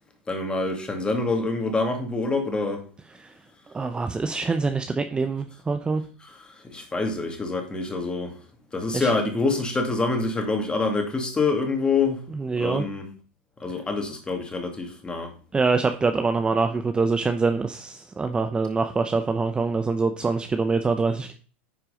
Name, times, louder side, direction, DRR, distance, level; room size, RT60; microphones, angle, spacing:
voice 1, 0.3-2.8 6.2-8.4 8.7-12.2 12.6-13.1 13.6-15.3, left 3 dB, 15° left, 2.3 m, -26 dB
voice 2, 3.7-6.0 8.9-9.1 12.4-12.9 15.5-21.3, right 4 dB, 15° right, 0.7 m, -24 dB
9.9 x 4.6 x 5.0 m
hypercardioid pair, 110°, 6 cm